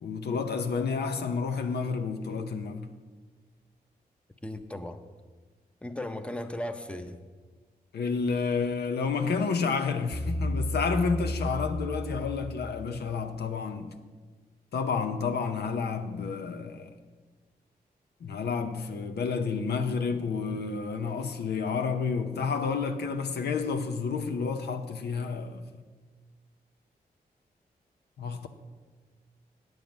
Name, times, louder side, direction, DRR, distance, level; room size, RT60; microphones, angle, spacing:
voice 1, 0.0-2.9 7.9-13.9 14.7-16.9 18.2-25.6 28.2-28.5, left 5 dB, 85° left, 0.7 m, -30 dB
voice 2, 4.4-5.0 5.8-7.2, left 1 dB, 5° left, 0.7 m, -36 dB
sound 1, 10.1-13.2, left 1 dB, 40° left, 1.6 m, -33 dB
9.0 x 7.7 x 5.2 m
cardioid pair, 60°, 17 cm